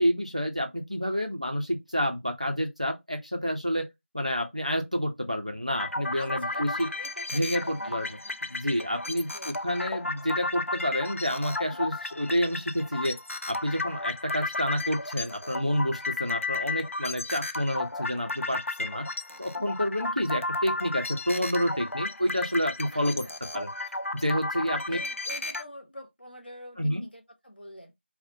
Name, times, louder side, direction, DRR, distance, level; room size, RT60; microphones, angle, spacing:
voice 1, 0.0-3.9 4.1-6.9 7.3-8.2 8.5-13.2 13.5-19.1 19.4-23.2 23.5-23.7 24.2-25.0 26.8-27.0, equal, 35° right, 0.4 m, -29 dB
sound 1, 5.7-25.6, left 2 dB, 85° left, 0.5 m, -34 dB
voice 2, 6.1-8.4 9.0-9.5 22.9-23.3 24.6-27.9, left 1 dB, 45° left, 0.7 m, -46 dB
2.6 x 2.0 x 2.5 m
figure-of-eight pair, 180°, 7 cm